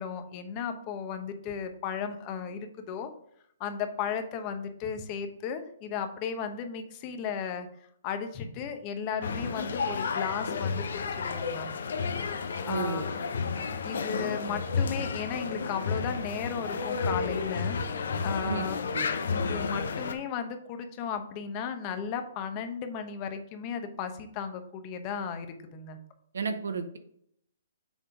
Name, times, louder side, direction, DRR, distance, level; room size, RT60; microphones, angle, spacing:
voice 1, 0.0-3.1 3.6-7.7 8.0-11.7 12.6-13.1 13.8-17.8 18.2-18.8 19.4-26.0, left 7 dB, 30° left, 8 dB, 0.9 m, -35 dB
sound 1, 9.2-20.1, left 5 dB, 70° left, 0.7 m, -31 dB
voice 2, 12.7-13.1 18.4-19.1 26.3-27.0, right 5 dB, 80° right, 8 dB, 0.8 m, -33 dB
7.2 x 3.7 x 4.9 m, 0.70 s
hypercardioid pair, 145°, 0 cm